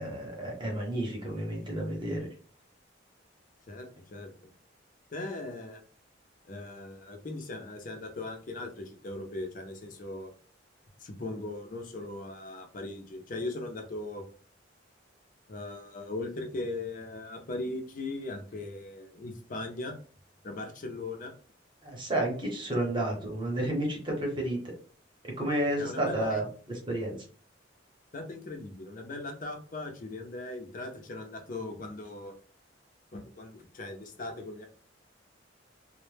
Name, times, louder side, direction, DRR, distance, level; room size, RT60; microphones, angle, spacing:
voice 1, 0.0-2.3 21.8-24.6 25.4-26.5 26.9-27.2, right 1 dB, 25° right, -1 dB, 0.8 m, -31 dB
voice 2, 3.7-4.3 5.1-5.8 6.4-10.3 11.0-14.2 15.5-19.9 20.4-21.3 25.8-26.4 28.1-32.3 33.1-34.7, left 2 dB, 45° left, 4 dB, 0.5 m, -39 dB
2.1 x 2.0 x 3.1 m, 0.41 s
head